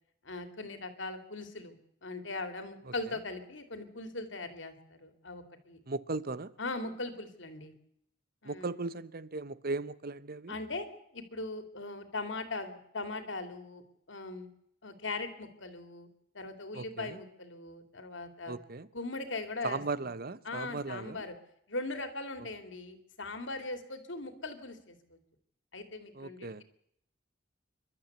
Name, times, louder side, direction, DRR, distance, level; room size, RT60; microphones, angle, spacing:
voice 1, 0.2-1.7 2.0-5.8 6.6-7.7 8.4-8.8 10.5-10.9 11.1-13.8 14.1-14.5 14.8-16.1 16.3-18.6 18.9-20.1 20.4-21.3 21.7-25.2 25.7-26.6, left 2 dB, 70° left, 2.7 m, -40 dB
voice 2, 5.9-6.5 8.4-10.6 16.7-17.2 18.5-18.9 19.6-21.3 26.1-26.6, right 3 dB, 50° right, 0.9 m, -37 dB
27.5 x 12.5 x 8.2 m
head